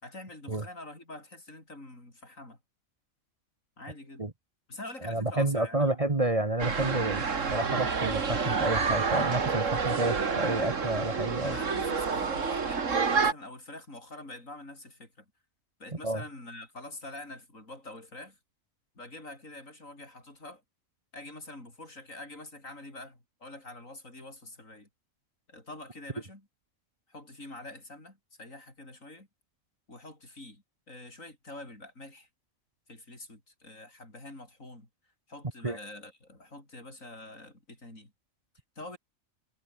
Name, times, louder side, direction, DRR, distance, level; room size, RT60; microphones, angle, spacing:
voice 1, 0.0-2.6 3.8-4.3 4.7-5.9 11.4-15.3 15.8-18.4 19.0-20.6 21.1-24.9 25.5-26.5 27.1-29.3 29.9-32.3 32.9-34.9 35.3-38.1 38.8-39.0, left 2 dB, 75° left, 7.4 m, -46 dB
voice 2, 5.0-11.6 16.0-16.2 35.6-35.8, right 2 dB, 25° right, 1.5 m, -30 dB
sound 1, 6.6-13.3, right 5 dB, 65° right, 2.3 m, -28 dB
omnidirectional pair, 1.4 m